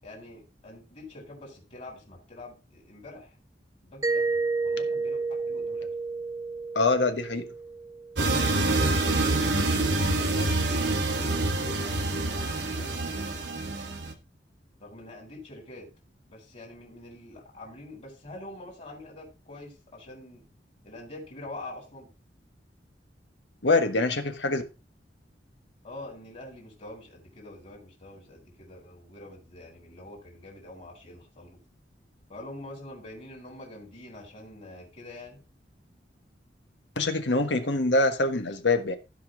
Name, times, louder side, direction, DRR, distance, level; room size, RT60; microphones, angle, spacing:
voice 1, 0.0-3.4 3.8-5.9 8.9-10.6 11.1-13.4 14.8-15.9 16.3-20.4 20.8-22.1 25.8-31.6 32.3-35.4, left 1 dB, 45° left, 3.8 m, -45 dB
Mallet percussion, 4.0-8.6, right 4 dB, 20° right, 0.5 m, -31 dB
voice 2, 6.7-7.5 23.6-24.6 37.0-39.0, left 2 dB, 80° left, 1.4 m, -24 dB
sound 1, 8.2-14.1, right 2 dB, 75° right, 1.4 m, -26 dB
15.5 x 5.2 x 3.8 m
head